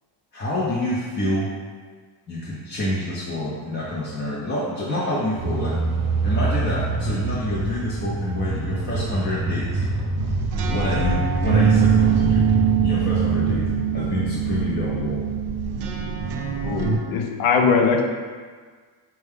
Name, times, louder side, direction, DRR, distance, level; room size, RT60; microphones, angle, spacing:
voice 1, 0.3-1.5 2.3-5.8 6.2-9.8 10.7-12.5 12.8-15.2, left 1 dB, 20° left, -7 dB, 0.6 m, -27 dB
sound 1, 5.4-13.6, right 2 dB, 35° right, 0.5 m, -26 dB
sound 2, 10.2-17.0, right 7 dB, 80° right, 0.6 m, -22 dB
voice 2, 16.6-18.0, left 5 dB, 75° left, 3 dB, 0.7 m, -20 dB
4.4 x 2.3 x 3.4 m, 1.5 s
cardioid pair, 120°, 50 cm